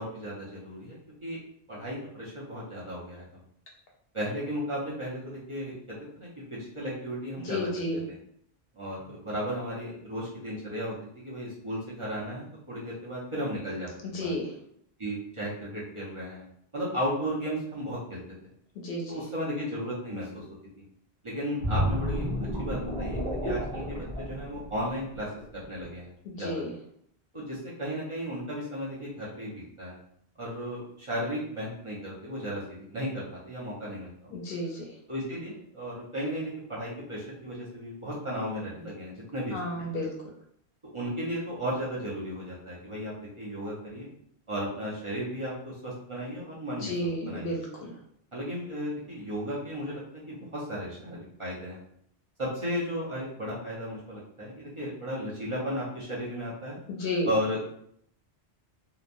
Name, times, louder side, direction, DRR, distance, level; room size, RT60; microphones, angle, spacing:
voice 1, 0.0-1.4 1.7-3.3 4.1-5.7 6.2-7.7 8.1-8.2 8.7-14.3 15.0-16.5 16.7-18.2 19.1-20.4 21.2-22.3 22.6-26.6 27.3-30.0 30.4-34.4 35.1-40.1 40.9-44.1 44.5-46.9 47.2-47.5 48.3-51.8 52.4-56.8 57.3-57.6, equal, 35° right, -7 dB, 0.7 m, -35 dB
voice 2, 7.4-8.0 14.0-14.5 18.8-19.2 26.3-26.7 34.3-34.9 39.5-40.1 46.8-47.9 56.9-57.3, left 1 dB, 65° left, -1 dB, 0.8 m, -32 dB
sound 1, 21.6-25.2 25.6-25.8, equal, 55° right, 1.1 m, -31 dB
3.0 x 2.1 x 2.5 m, 0.69 s
omnidirectional pair, 1.1 m